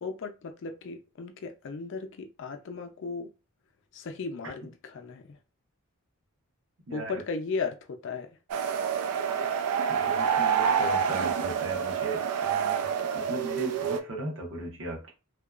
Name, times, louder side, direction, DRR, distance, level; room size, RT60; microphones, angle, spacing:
voice 1, 0.0-3.3 3.9-5.2 6.9-8.3, left 4 dB, 60° left, 0.4 m, -36 dB
sound 1, 8.5-14.0, right 7 dB, 90° right, 0.4 m, -27 dB
voice 2, 9.9-12.9 13.1-15.1, right 1 dB, 60° right, 1.0 m, -37 dB
2.8 x 2.2 x 2.4 m
head